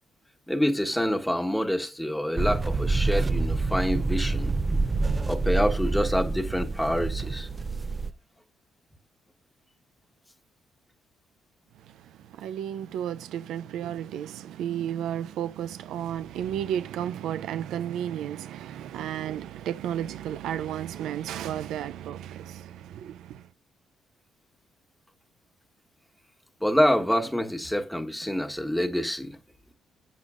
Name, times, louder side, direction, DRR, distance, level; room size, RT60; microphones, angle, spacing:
voice 1, 0.5-4.5 5.3-7.5 26.6-29.4, equal, 5° left, 1.2 m, -26 dB
sound 1, 2.4-8.1, right 3 dB, 25° right, 0.5 m, -27 dB
voice 2, 11.8-23.5, right 10 dB, 85° right, 0.4 m, -33 dB
11.0 x 8.0 x 2.5 m
cardioid pair, 90°, 0 cm